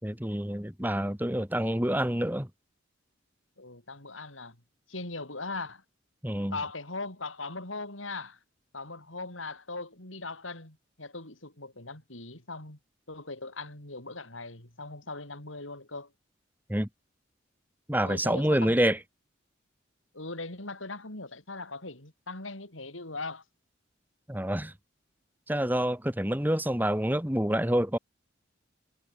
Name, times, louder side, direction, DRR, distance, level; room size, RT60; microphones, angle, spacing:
voice 1, 0.0-2.5 6.2-6.6 16.7-16.9 17.9-19.0 24.3-24.7 25.5-28.0, right 1 dB, 10° right, 2.8 m, -27 dB
voice 2, 3.6-4.6 4.9-5.8 6.5-8.4 8.7-12.8 13.1-16.1 18.0-18.8 20.1-23.4, left 3 dB, 85° left, 6.5 m, -39 dB
head